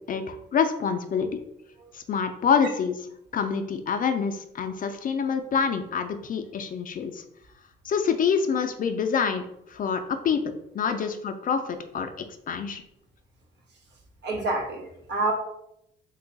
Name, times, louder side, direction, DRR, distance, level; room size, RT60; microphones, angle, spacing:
voice 1, 0.1-1.4 1.9-3.0 3.3-7.2 7.8-9.4 9.7-10.0 10.2-10.4 10.7-12.1 12.5-12.8, left 6 dB, 45° left, 7 dB, 0.4 m, -26 dB
voice 2, 14.2-15.3, right 2 dB, 60° right, 1 dB, 0.9 m, -28 dB
2.7 x 2.3 x 3.9 m, 0.78 s
cardioid pair, 90°, 20 cm